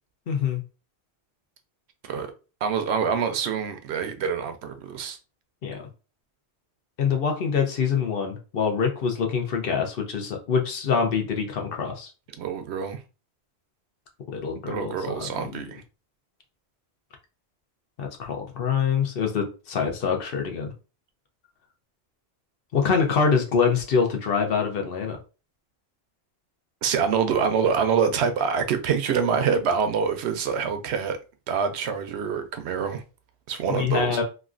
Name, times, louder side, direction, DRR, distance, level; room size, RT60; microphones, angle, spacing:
voice 1, 0.3-0.6 5.6-5.8 7.0-12.1 14.3-15.5 18.0-20.7 22.7-25.2 33.7-34.2, left 6 dB, 65° left, 0.9 m, -25 dB
voice 2, 2.6-5.2 12.4-13.0 14.7-15.8 26.8-31.2 31.5-33.0 33.5-34.2, right 6 dB, 85° right, 0.8 m, -25 dB
3.1 x 2.4 x 2.4 m
omnidirectional pair, 1.1 m